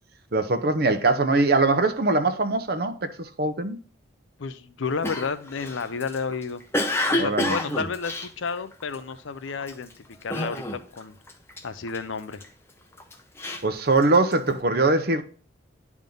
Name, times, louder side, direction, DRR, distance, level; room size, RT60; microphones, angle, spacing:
voice 1, 0.3-3.8 7.2-7.6 13.6-15.2, right 3 dB, 50° right, 0.7 m, -22 dB
voice 2, 4.4-6.6 7.1-11.2 11.6-12.4, left 5 dB, 85° left, 0.6 m, -31 dB
Cough, 5.0-9.1 9.6-9.9 10.3-11.0 11.3-12.4 13.0-14.5, left 1 dB, 15° left, 0.6 m, -29 dB
10.5 x 3.6 x 3.8 m
head